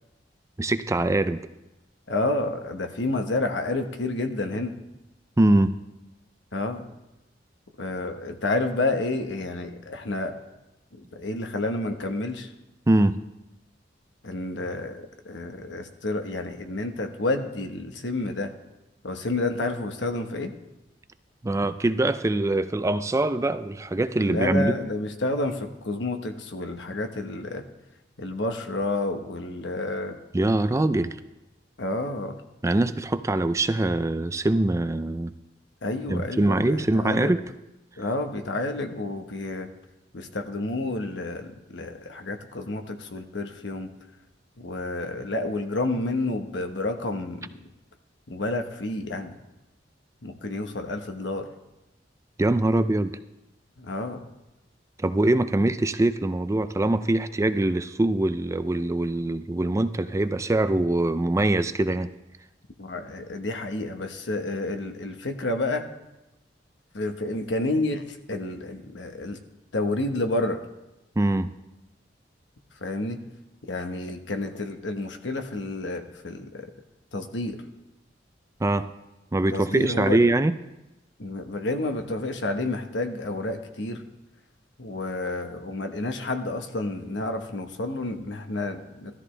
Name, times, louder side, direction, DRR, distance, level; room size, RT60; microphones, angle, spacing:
voice 1, 0.6-1.4 5.4-5.8 12.9-13.2 21.4-24.7 30.3-31.2 32.6-35.3 36.1-37.4 52.4-53.2 55.0-62.1 71.2-71.5 78.6-78.9 79.3-80.5, right 2 dB, 15° right, 11 dB, 0.4 m, -23 dB
voice 2, 2.1-4.8 6.5-6.9 7.8-10.3 10.9-12.5 14.2-18.5 19.0-20.5 24.2-27.6 28.2-30.2 31.8-32.4 35.8-37.4 38.0-39.7 40.1-43.9 44.6-47.7 48.3-49.4 50.2-51.5 53.8-54.2 62.8-65.9 66.9-69.4 69.7-70.6 72.8-73.2 73.6-76.7 77.1-77.6 79.5-80.3 81.2-84.0 84.8-89.2, left 2 dB, 75° left, 5 dB, 1.2 m, -30 dB
17.0 x 13.5 x 3.3 m, 0.96 s
head